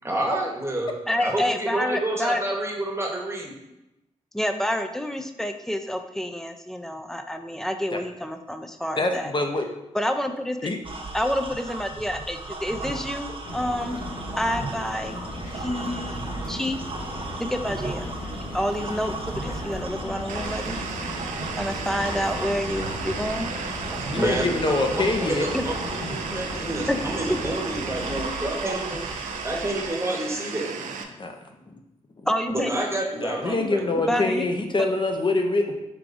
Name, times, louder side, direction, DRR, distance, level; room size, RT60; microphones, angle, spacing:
voice 1, 0.0-0.9 1.2-3.5 24.1-29.0 29.4-30.7 32.5-34.0, right 1 dB, 20° right, -1 dB, 1.0 m, -29 dB
voice 2, 1.1-2.4 4.3-9.3 9.9-10.7 11.1-14.0 14.4-15.2 15.6-16.2 16.5-16.8 17.4-18.1 18.5-20.8 21.6-23.5 25.5-25.6 26.9-27.0 27.3-27.4 32.3-32.7 34.0-34.5, left 1 dB, 5° left, 7 dB, 0.4 m, -28 dB
voice 3, 9.0-9.6 10.6-10.8 24.1-25.5 31.2-31.3 31.7-31.8 33.2-35.7, left 2 dB, 40° left, 4 dB, 0.7 m, -24 dB
sound 1, 10.8-29.9, right 2 dB, 45° right, 0.8 m, -36 dB
sound 2, 13.4-28.2, left 1 dB, 90° left, 1.0 m, -36 dB
sound 3, 20.3-31.0, right 6 dB, 90° right, 0.4 m, -35 dB
4.7 x 3.6 x 2.5 m, 0.93 s
cardioid pair, 55°, 13 cm